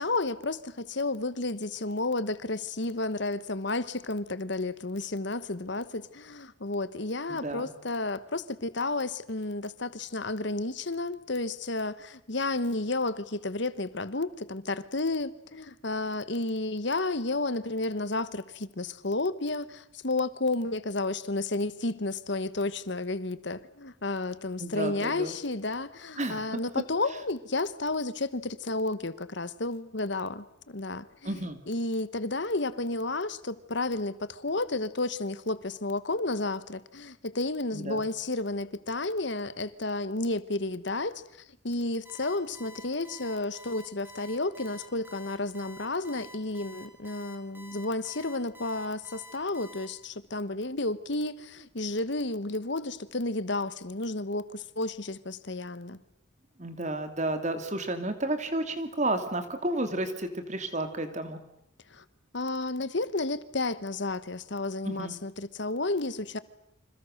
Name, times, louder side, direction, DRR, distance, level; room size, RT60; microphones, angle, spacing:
voice 1, 0.0-31.4 31.7-41.2 41.6-56.0 61.9-62.0 62.3-66.4, left 2 dB, 60° left, 1.3 m, -32 dB
voice 2, 7.3-7.7 24.6-25.3 26.2-26.6 31.2-31.6 37.7-38.1 56.6-61.4 64.8-65.1, right 1 dB, 35° right, 2.8 m, -32 dB
Alarm, 42.0-49.8, right 2 dB, 10° right, 4.4 m, -49 dB
29.0 x 26.5 x 6.6 m
head